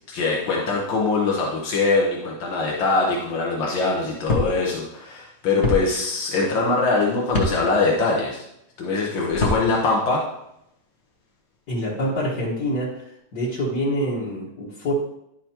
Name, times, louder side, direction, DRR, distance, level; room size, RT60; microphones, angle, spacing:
voice 1, 0.1-8.4 8.8-10.2, left 3 dB, 85° left, -2 dB, 1.9 m, -22 dB
sound 1, 4.3-4.5 5.6-5.8 7.3-7.5 9.3-9.6, left 2 dB, 40° left, 1.3 m, -22 dB
voice 2, 11.7-14.9, equal, 60° left, -7 dB, 2.1 m, -26 dB
11.0 x 5.7 x 2.9 m, 0.79 s
omnidirectional pair, 2.0 m